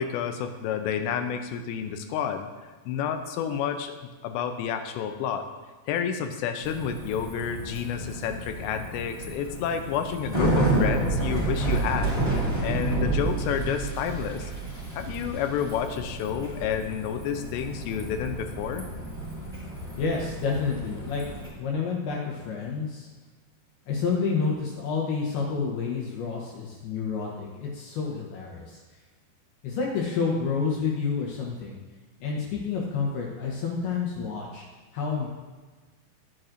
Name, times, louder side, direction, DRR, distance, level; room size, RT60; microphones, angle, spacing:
voice 1, 0.0-2.5 2.9-4.0 4.2-5.5 5.9-12.2 12.6-14.5 15.0-18.9, left 8 dB, 90° left, 6 dB, 2.9 m, -30 dB
Bicycle, 6.6-21.5, right 2 dB, 10° left, 2.1 m, -30 dB
voice 2, 20.0-21.2 21.6-23.1 23.9-28.8 29.6-31.8 32.2-34.6 34.9-35.3, left 5 dB, 70° left, -2 dB, 2.7 m, -29 dB
11.0 x 9.0 x 2.6 m, 1.3 s
omnidirectional pair, 5.0 m